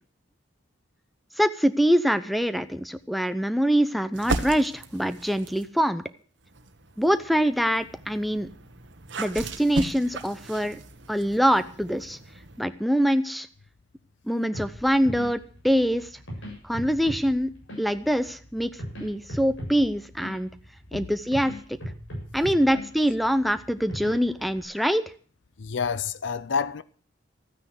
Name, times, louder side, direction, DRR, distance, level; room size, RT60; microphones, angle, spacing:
voice 1, 1.4-6.0 7.0-8.5 9.2-10.8 11.1-12.2 12.6-13.5 14.3-16.1 16.6-17.5 17.8-20.5 20.9-21.5 22.3-25.0, equal, ahead, 0.7 m, -24 dB
sound 1, 4.1-5.7 6.4-12.6, right 2 dB, 65° right, 1.4 m, -36 dB
sound 2, 14.5-24.6, equal, 90° left, 7.7 m, -40 dB
voice 2, 25.6-26.8, left 6 dB, 75° left, 0.6 m, -29 dB
14.0 x 9.7 x 8.0 m
head